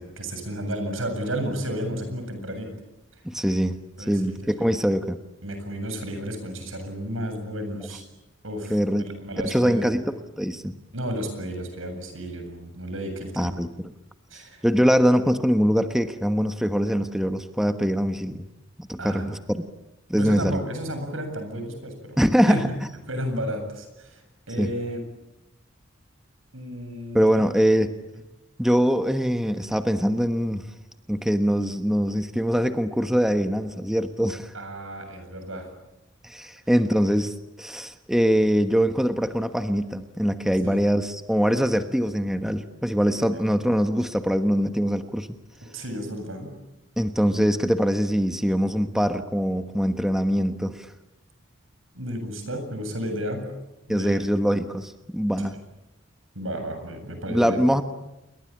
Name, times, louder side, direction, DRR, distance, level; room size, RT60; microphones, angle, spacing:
voice 1, 0.0-2.7 4.0-4.7 5.4-8.0 8.4-9.9 10.9-13.5 14.3-14.6 19.0-19.3 20.1-22.2 22.5-24.2 24.5-25.0 26.5-27.4 34.5-35.7 40.6-40.8 43.3-43.4 45.7-46.5 51.9-53.5 53.9-54.3 56.3-57.6, equal, 80° right, 7 dB, 7.6 m, -32 dB
voice 2, 3.2-3.8 4.1-5.2 8.7-9.0 9.4-10.1 10.4-10.7 13.4-13.7 14.6-18.5 18.9-19.6 20.1-20.6 22.2-22.7 24.6-24.7 27.1-27.9 28.6-30.6 31.1-34.5 36.2-45.4 47.0-50.9 53.9-55.6 57.3-57.8, equal, ahead, 7 dB, 1.2 m, -23 dB
28.5 x 23.0 x 8.8 m, 0.97 s
head